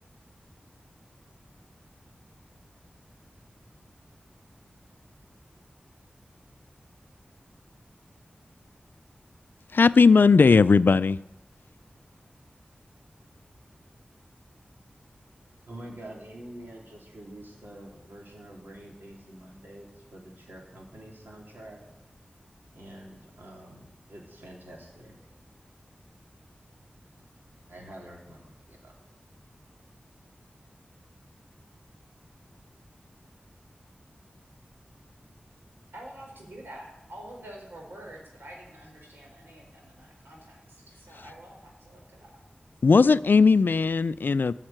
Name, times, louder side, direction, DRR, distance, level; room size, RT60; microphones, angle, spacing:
voice 1, 9.7-11.2 42.8-44.5, left 4 dB, 75° left, 16 dB, 0.4 m, -18 dB
voice 2, 15.7-21.8 22.7-25.1 27.7-29.0, right 1 dB, 70° right, -1 dB, 3.5 m, -46 dB
voice 3, 35.9-42.3, right 1 dB, 90° right, -1 dB, 4.2 m, -47 dB
13.5 x 6.6 x 9.0 m, 0.94 s
wide cardioid pair, 60°, 3 cm